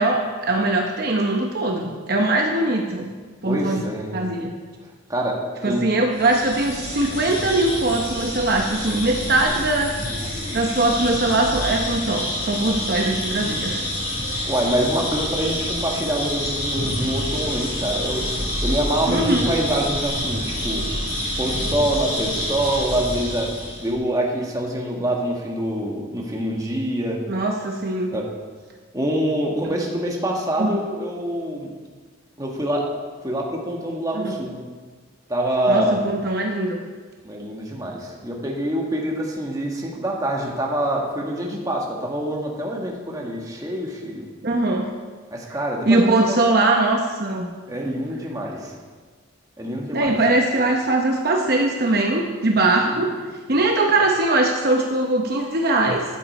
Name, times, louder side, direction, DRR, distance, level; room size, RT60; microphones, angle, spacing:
voice 1, 0.0-3.1 3.4-3.8 4.1-4.5 5.6-10.0 10.5-13.8 19.1-19.5 27.3-28.1 30.6-30.8 34.1-34.3 35.7-36.8 44.4-44.9 45.9-47.5 49.9-53.1 53.5-56.0, right 2 dB, 50° right, 1 dB, 0.9 m, -21 dB
voice 2, 3.4-4.2 5.1-5.3 5.6-5.9 14.5-18.2 18.6-20.8 21.4-23.5 23.8-27.2 28.1-28.3 28.9-31.7 32.4-32.9 33.2-34.6 35.3-36.1 37.2-44.3 45.3-46.4 47.7-48.7 49.6-50.2 52.9-53.1, right 1 dB, 15° right, -1 dB, 1.7 m, -25 dB
sound 1, 6.1-23.9, left 1 dB, 45° left, 4.1 m, -27 dB
13.5 x 10.0 x 4.3 m, 1.5 s
head